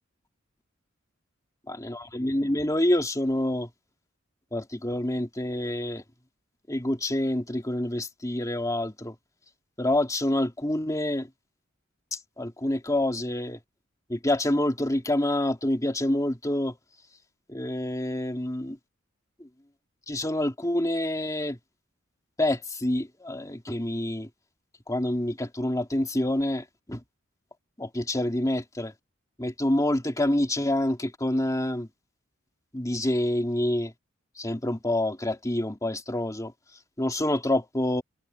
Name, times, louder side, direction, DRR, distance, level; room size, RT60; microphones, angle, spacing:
voice 1, 1.7-3.7 4.5-6.0 6.7-9.1 9.8-11.3 12.1-13.6 14.1-16.7 17.5-18.8 19.4-19.5 20.1-21.6 22.4-24.3 24.9-27.0 27.8-28.9 29.4-31.9 32.7-33.9 34.4-36.5 37.0-38.0, left 1 dB, 15° left, 2.7 m, -27 dB
head